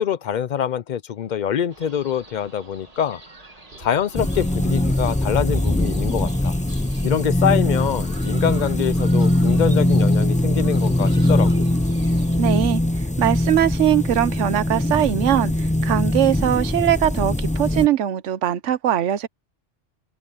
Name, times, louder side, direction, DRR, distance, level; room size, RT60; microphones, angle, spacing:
voice 1, 0.0-3.2 3.8-6.5 7.0-11.5, left 8 dB, 55° left, 0.5 m, -24 dB
sound 1, 1.7-12.4, right 2 dB, 30° right, 2.1 m, -46 dB
Thunder, 3.7-10.7 11.7-11.8 13.3-13.5 13.9-14.0 16.0-16.2 16.9-17.2, right 2 dB, 55° right, 4.2 m, -52 dB
sound 2, 4.1-17.9, left 1 dB, 10° left, 0.6 m, -21 dB
voice 2, 12.4-12.8 13.2-19.3, right 11 dB, 80° right, 1.1 m, -21 dB
open air
omnidirectional pair, 1.2 m